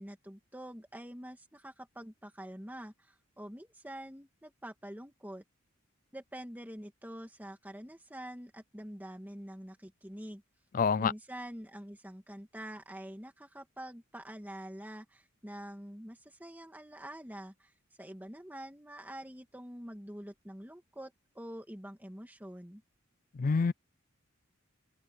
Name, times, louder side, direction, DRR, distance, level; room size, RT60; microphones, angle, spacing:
voice 1, 0.0-5.4 6.1-10.4 11.0-17.7 18.0-22.8, right 1 dB, 10° right, 2.1 m, -46 dB
voice 2, 10.7-11.1 23.4-23.7, left 5 dB, 40° left, 0.4 m, -26 dB
open air
head